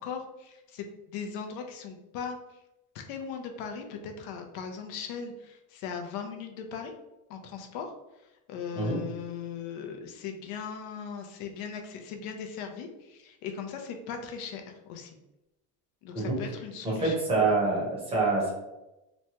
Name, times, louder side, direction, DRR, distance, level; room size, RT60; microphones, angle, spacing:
voice 1, 0.0-2.4 2.9-6.9 7.3-7.9 8.5-15.2 16.0-17.2, left 6 dB, 75° left, 4 dB, 0.5 m, -38 dB
voice 2, 16.8-18.5, right 3 dB, 15° right, -4 dB, 0.7 m, -26 dB
3.0 x 2.2 x 2.8 m, 0.96 s
cardioid pair, 170°, 35 cm